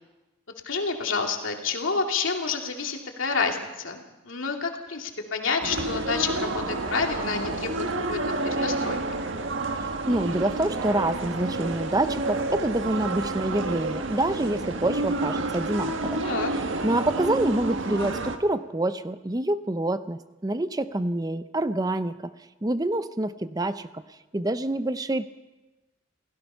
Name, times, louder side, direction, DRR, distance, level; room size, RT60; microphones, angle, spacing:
voice 1, 0.6-7.7 8.1-8.2 8.4-9.0 16.2-16.5, left 4 dB, 90° left, 2 dB, 2.6 m, -29 dB
sound 1, 5.6-18.4, right 2 dB, 80° right, 1.5 m, -29 dB
voice 2, 9.8-16.2 16.8-22.3 22.6-24.0 24.3-25.3, right 1 dB, 20° right, 12 dB, 0.6 m, -27 dB
28.5 x 16.5 x 5.6 m, 1.1 s
head